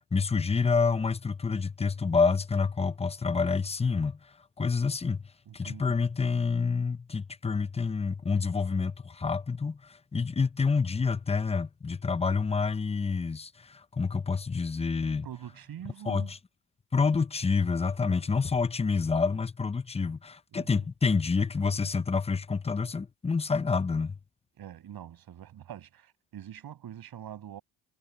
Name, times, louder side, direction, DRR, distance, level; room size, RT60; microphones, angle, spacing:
voice 1, 0.1-4.2 4.6-5.2 5.5-15.3 16.1-16.4 16.9-24.2, left 4 dB, 15° left, 0.7 m, -28 dB
voice 2, 5.5-6.1 15.2-16.3 18.1-18.5 20.5-20.9 24.6-27.6, right 10 dB, 55° right, 7.1 m, -45 dB
cardioid pair, 105°, 42 cm